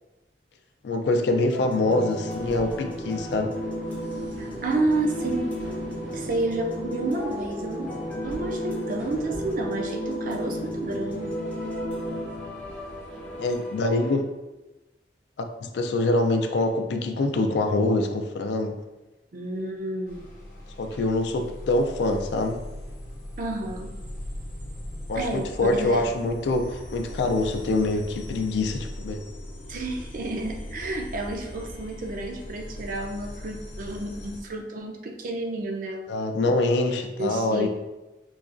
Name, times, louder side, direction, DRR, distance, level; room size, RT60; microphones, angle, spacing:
voice 1, 0.8-3.5 13.4-14.3 15.4-18.8 20.8-22.6 25.1-29.2 36.1-37.7, left 2 dB, 70° left, 5 dB, 0.3 m, -25 dB
sound 1, 1.5-14.2, equal, 10° left, 0.5 m, -33 dB
sound 2, 2.2-13.5, equal, 90° right, 0.8 m, -43 dB
voice 2, 4.4-5.5 6.1-7.9 8.2-11.3 19.3-20.2 20.9-21.0 23.4-23.9 25.1-26.1 29.7-36.1 36.5-36.6 37.2-37.7, right 2 dB, 50° right, 2 dB, 0.4 m, -30 dB
sound 3, 20.1-34.4, left 1 dB, 50° left, 0.7 m, -39 dB
3.8 x 2.3 x 2.5 m, 1.1 s
head